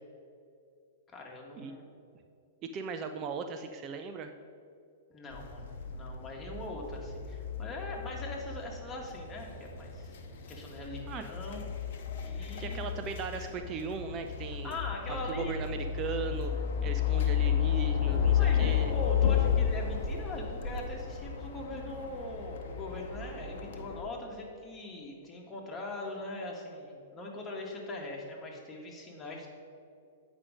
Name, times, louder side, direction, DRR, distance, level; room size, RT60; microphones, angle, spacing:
voice 1, 1.1-1.9 5.1-10.2 10.5-11.6 12.2-13.0 14.6-15.5 16.8-17.1 18.3-29.5, left 2 dB, 20° left, -1 dB, 1.7 m, -41 dB
voice 2, 2.7-4.3 11.1-11.2 12.4-14.8 15.1-16.5 16.8-18.9, right 5 dB, 30° right, 7 dB, 0.4 m, -38 dB
sound 1, 5.3-24.0, left 8 dB, 60° left, 0.8 m, -32 dB
8.5 x 5.2 x 5.1 m, 2.5 s
figure-of-eight pair, 105°, 0 cm